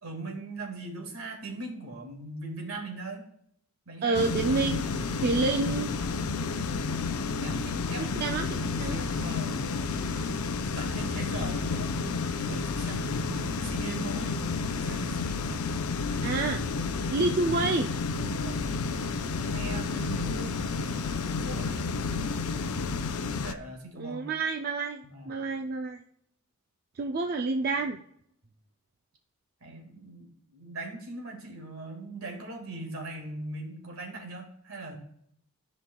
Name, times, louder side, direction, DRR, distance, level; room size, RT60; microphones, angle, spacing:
voice 1, 0.0-3.2 3.9-4.2 7.4-8.2 8.5-9.7 10.8-14.4 14.7-15.7 18.1-18.6 19.5-20.5 21.3-21.7 23.4-24.3 25.0-25.3 29.6-35.0, right 2 dB, 70° right, 2 dB, 1.9 m, -40 dB
voice 2, 4.0-5.9 8.0-9.0 16.2-16.6 17.1-17.9 20.3-20.5 23.9-26.0 27.0-28.0, right 3 dB, 45° right, 4 dB, 0.4 m, -29 dB
sound 1, 4.1-23.5, left 4 dB, 75° left, 0.5 m, -31 dB
13.5 x 5.3 x 2.3 m, 0.69 s
head